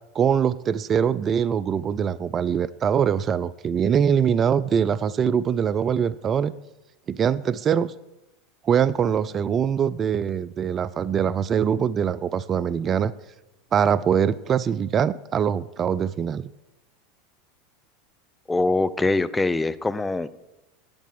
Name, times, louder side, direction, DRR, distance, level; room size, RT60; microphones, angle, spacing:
voice 1, 0.1-6.5 7.1-7.9 8.6-13.1 13.7-16.5, right 8 dB, 35° right, 18 dB, 0.4 m, -23 dB
voice 2, 18.5-20.3, left 2 dB, 10° left, 15 dB, 0.6 m, -23 dB
8.7 x 8.4 x 7.7 m, 0.96 s
hypercardioid pair, 90°, 0 cm